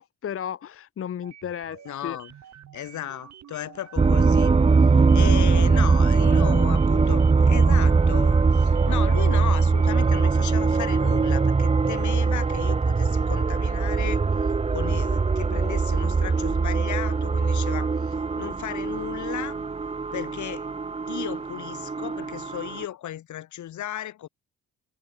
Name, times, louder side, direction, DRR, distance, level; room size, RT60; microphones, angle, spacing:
voice 1, 0.0-2.2, left 9 dB, 50° left, 1.0 m, -34 dB
sound 1, 1.2-10.8, right 10 dB, 65° right, 3.8 m, -48 dB
voice 2, 1.8-2.3 2.7-4.5 5.1-14.2 14.7-19.6 20.1-20.7 21.1-24.3, left 12 dB, 70° left, 2.4 m, -35 dB
sound 2, 4.0-22.8, right 4 dB, 20° right, 0.9 m, -21 dB
cardioid pair, 90°, 30 cm